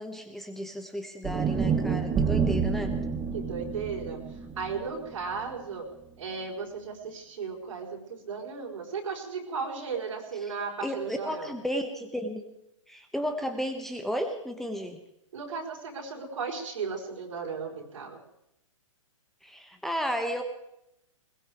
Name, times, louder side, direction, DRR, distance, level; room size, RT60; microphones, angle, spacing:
voice 1, 0.0-2.9 10.4-10.5 10.8-12.4 12.9-15.0 19.4-20.4, equal, ahead, 5 dB, 1.1 m, -33 dB
sound 1, 1.2-5.5, right 6 dB, 15° right, 1.0 m, -29 dB
voice 2, 3.3-5.9 6.2-11.5 15.3-18.2, right 5 dB, 75° right, -2 dB, 4.7 m, -35 dB
21.0 x 19.5 x 3.5 m, 0.82 s
hypercardioid pair, 125°, 17 cm